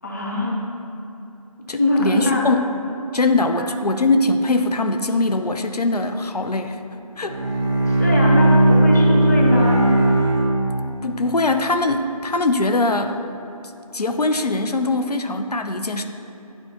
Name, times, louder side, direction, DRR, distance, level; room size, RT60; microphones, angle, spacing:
voice 1, 0.0-0.6 1.7-2.5 3.6-3.7 7.9-9.8, left 1 dB, 25° left, -3 dB, 0.7 m, -22 dB
voice 2, 1.7-2.7 3.1-6.8 7.2-7.4 11.0-13.2 13.9-16.0, left 2 dB, 85° left, 6 dB, 0.5 m, -21 dB
Bowed string instrument, 7.1-11.2, right 1 dB, 10° right, 1.4 m, -17 dB
11.5 x 4.6 x 2.8 m, 2.9 s
figure-of-eight pair, 165°, 20 cm